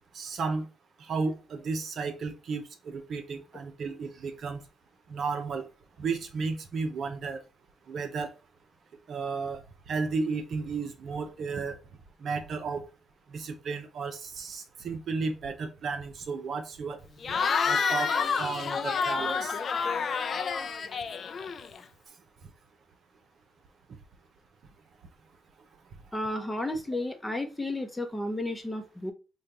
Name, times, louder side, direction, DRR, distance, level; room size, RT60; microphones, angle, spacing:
voice 1, 0.1-0.7 1.0-4.6 5.1-5.7 6.0-7.4 7.9-8.3 9.1-9.6 9.9-11.8 12.2-12.8 13.3-17.0 17.7-18.1 18.4-19.5, right 4 dB, 60° right, 0.7 m, -33 dB
Cheering / Crowd, 17.2-21.8, left 5 dB, 50° left, 0.4 m, -29 dB
voice 2, 26.1-29.1, left 1 dB, 10° left, 0.8 m, -32 dB
4.9 x 2.3 x 2.8 m
cardioid pair, 90°, 0 cm